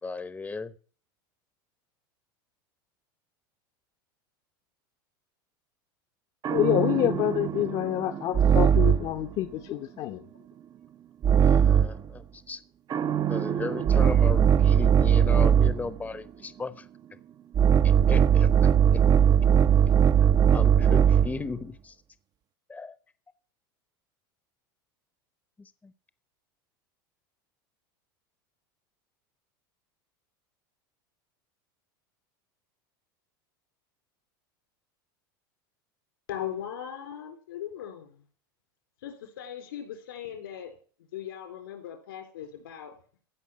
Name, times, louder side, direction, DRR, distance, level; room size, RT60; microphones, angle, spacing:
voice 1, 0.0-0.7 11.3-12.6 13.3-16.9 17.8-18.5 20.5-22.0 22.7-23.0 25.6-25.9, left 4 dB, 15° left, 0.9 m, -36 dB
sound 1, 6.4-9.2 11.2-12.1 12.9-15.9 17.5-21.4, right 8 dB, 35° right, 0.7 m, -20 dB
voice 2, 6.5-10.2, left 13 dB, 50° left, 1.0 m, -27 dB
voice 3, 36.3-38.2 39.0-40.7 41.1-42.9, left 10 dB, 85° left, 4.2 m, -39 dB
16.0 x 5.4 x 8.7 m
hypercardioid pair, 95°, 12 cm